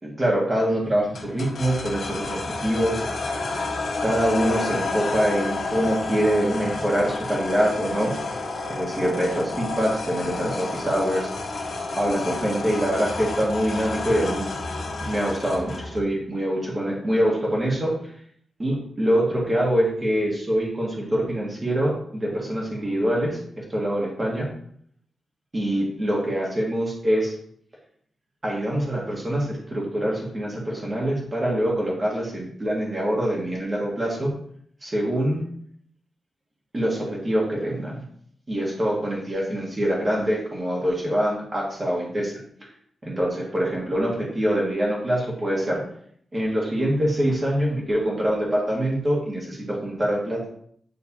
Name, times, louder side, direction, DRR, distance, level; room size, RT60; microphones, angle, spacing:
voice 1, 0.0-3.0 4.0-8.1 8.7-11.3 12.0-14.4 15.1-17.9 18.6-24.5 25.5-27.3 28.4-34.3 34.8-35.4 36.7-38.0 38.5-42.3 43.0-45.8 46.3-50.5, equal, 25° right, -3 dB, 2.0 m, -24 dB
sound 1, 1.1-16.0, left 3 dB, 60° left, 1.3 m, -30 dB
9.6 x 3.9 x 2.8 m, 0.64 s
wide cardioid pair, 150°, 0 cm